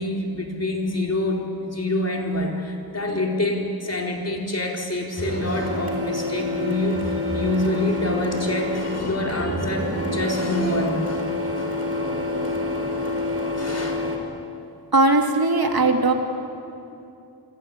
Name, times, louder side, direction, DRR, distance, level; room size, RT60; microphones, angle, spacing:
voice 1, 0.0-11.3 11.6-11.7 12.5-12.6 13.6-14.0, left 1 dB, 35° left, 1 dB, 4.3 m, -26 dB
Printer, 5.2-14.2, left 2 dB, 35° right, 4.7 m, -27 dB
voice 2, 14.9-16.1, right 2 dB, 55° right, 3 dB, 2.9 m, -18 dB
27.5 x 24.5 x 8.8 m, 2.7 s
wide cardioid pair, 85°, 43 cm